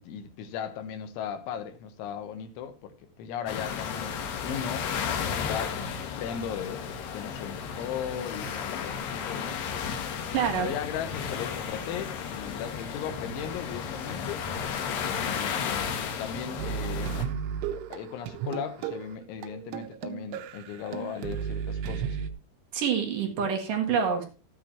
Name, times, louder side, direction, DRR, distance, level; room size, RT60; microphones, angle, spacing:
voice 1, 0.0-4.2 4.4-4.9 5.5-9.6 10.6-14.5 15.2-17.3 17.7-22.2 23.2-23.3, left 8 dB, 85° left, 3.5 m, -37 dB
sound 1, 3.5-17.2, left 7 dB, 65° left, 2.4 m, -33 dB
voice 2, 10.3-10.7 22.7-24.2, right 7 dB, 55° right, 2.8 m, -26 dB
sound 2, 16.6-22.3, right 7 dB, 85° right, 3.3 m, -34 dB
13.5 x 9.2 x 3.0 m
omnidirectional pair, 5.3 m